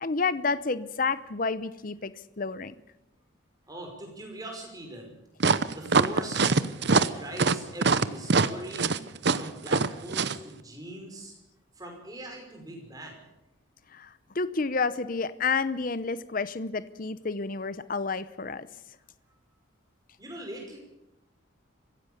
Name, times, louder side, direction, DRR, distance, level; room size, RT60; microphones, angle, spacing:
voice 1, 0.0-2.1 2.4-2.7 13.9-18.7, left 4 dB, 45° left, 15 dB, 0.7 m, -30 dB
voice 2, 3.7-5.2 5.7-6.6 6.9-8.9 9.3-11.3 11.8-13.2 20.2-20.8, right 1 dB, 20° right, 2 dB, 5.5 m, -40 dB
sound 1, 5.4-10.4, right 4 dB, 55° right, 0.8 m, -23 dB
24.0 x 16.0 x 7.1 m, 0.93 s
head